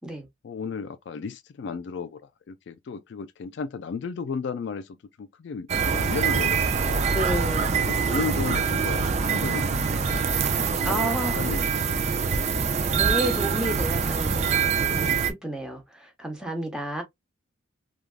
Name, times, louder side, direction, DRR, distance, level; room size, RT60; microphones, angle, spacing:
voice 1, 0.4-2.2 2.5-7.0 7.7-9.7 10.1-10.2 10.7-11.0 11.3-12.8, left 5 dB, 60° left, 0.3 m, -34 dB
sound 1, 5.7-15.3, right 5 dB, 35° right, 0.4 m, -24 dB
voice 2, 7.1-7.8 10.8-11.5 12.9-17.0, right 1 dB, 5° right, 0.8 m, -31 dB
3.2 x 2.4 x 2.3 m
head